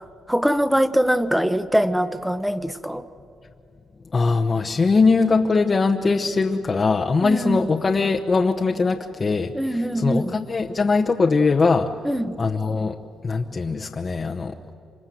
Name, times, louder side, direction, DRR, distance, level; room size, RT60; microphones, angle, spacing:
voice 1, 0.0-3.0 7.2-7.6 9.5-10.3 12.0-12.4, equal, ahead, 12 dB, 1.0 m, -23 dB
voice 2, 4.1-11.9 12.4-13.0 13.2-14.7, left 4 dB, 35° left, 3 dB, 1.0 m, -21 dB
27.0 x 26.0 x 7.7 m, 2.5 s
cardioid pair, 90°, 0 cm